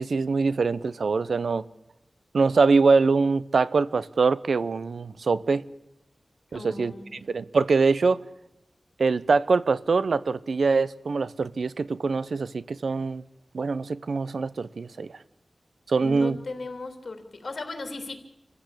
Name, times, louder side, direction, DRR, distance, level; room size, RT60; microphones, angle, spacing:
voice 1, 0.0-1.6 2.3-5.6 6.5-6.9 7.3-8.2 9.0-13.2 13.5-15.1 15.9-16.4, right 4 dB, 85° right, 0.7 m, -23 dB
voice 2, 6.5-7.2 16.0-18.2, left 3 dB, 60° left, 3.4 m, -36 dB
26.5 x 15.0 x 8.4 m
wide cardioid pair, 85°, 0 cm